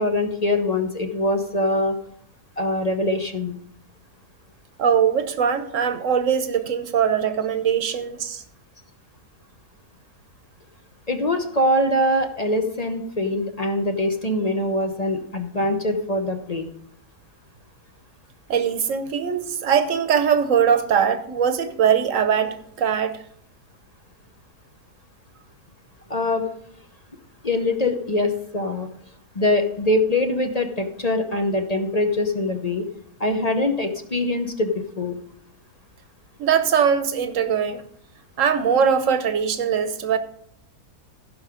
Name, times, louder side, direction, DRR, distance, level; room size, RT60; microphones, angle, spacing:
voice 1, 0.0-2.0 2.6-3.6 11.1-16.7 26.1-26.4 27.4-28.9 29.3-32.9 33.2-35.2, left 1 dB, 35° left, 5 dB, 0.7 m, -23 dB
voice 2, 4.8-8.4 18.5-23.2 36.4-37.8 38.4-40.2, right 7 dB, 60° right, 10 dB, 1.2 m, -21 dB
15.5 x 5.6 x 5.0 m, 0.68 s
omnidirectional pair, 1.7 m